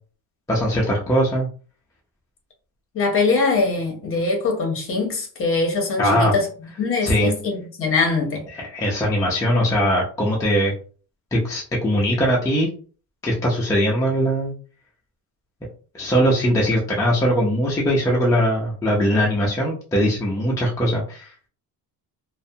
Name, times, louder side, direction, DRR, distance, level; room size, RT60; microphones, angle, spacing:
voice 1, 0.5-1.5 6.0-6.3 7.0-7.3 8.5-10.7 11.3-12.7 13.2-14.5 15.9-21.3, equal, 10° left, 0.4 m, -20 dB
voice 2, 2.9-6.5 6.8-8.4, left 3 dB, 35° left, 0.8 m, -22 dB
2.6 x 2.1 x 2.6 m
cardioid pair, 155°, 38 cm